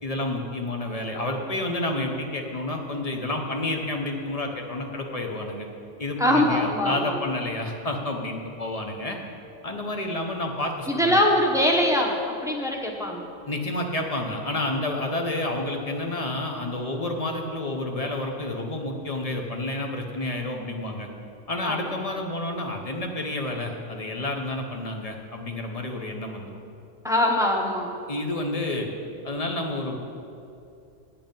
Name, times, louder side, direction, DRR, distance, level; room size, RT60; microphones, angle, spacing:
voice 1, 0.0-5.7 6.0-9.2 9.6-11.2 13.5-21.1 21.5-26.5 28.1-28.9 29.2-30.0, left 2 dB, 35° left, 3 dB, 0.8 m, -30 dB
voice 2, 6.2-7.2 10.9-13.3 21.6-21.9 27.0-27.9, left 1 dB, 5° right, 0 dB, 0.8 m, -23 dB
8.7 x 7.9 x 5.3 m, 2.6 s
omnidirectional pair, 1.3 m